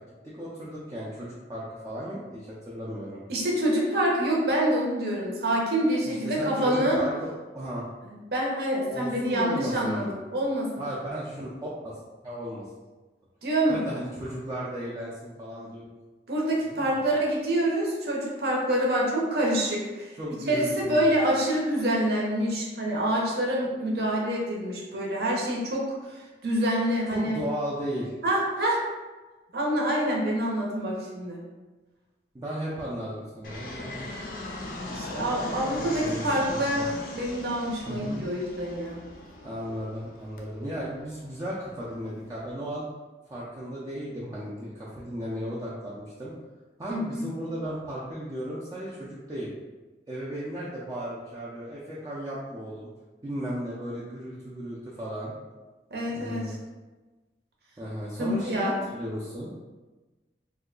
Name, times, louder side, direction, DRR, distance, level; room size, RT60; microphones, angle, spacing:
voice 1, 0.2-3.2 6.1-7.8 8.9-10.1 10.8-11.7 12.2-12.7 13.7-15.8 16.6-17.0 20.2-21.0 27.1-28.1 32.3-34.0 35.8-36.2 36.5-36.9 37.9-38.2 39.4-42.9 43.3-46.3 46.8-49.5 50.1-52.9 53.2-55.3 56.1-56.5 57.8-59.5, equal, 20° right, -8 dB, 0.4 m, -35 dB
voice 2, 3.3-7.0 8.0-10.7 13.4-13.8 16.3-20.1 20.5-27.4 28.2-28.8 29.5-31.4 34.9-39.0 46.9-47.3 55.9-56.6 58.2-58.7, right 1 dB, 65° right, -3 dB, 0.7 m, -26 dB
Fixed-wing aircraft airplane, 33.4-42.5, left 2 dB, 50° left, 0.5 m, -40 dB
2.7 x 2.2 x 3.7 m, 1.2 s
head